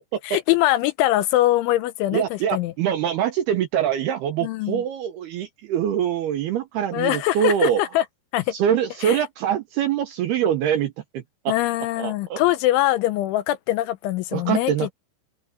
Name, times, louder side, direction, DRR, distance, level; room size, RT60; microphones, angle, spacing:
voice 1, 0.2-2.7 4.4-4.8 6.9-8.0 8.3-8.5 9.0-9.2 11.5-14.9, left 15 dB, 80° left, 3.0 m, -22 dB
voice 2, 2.1-7.8 8.5-11.5 12.0-12.4 14.3-14.9, right 9 dB, 75° right, 2.5 m, -24 dB
omnidirectional pair, 5.8 m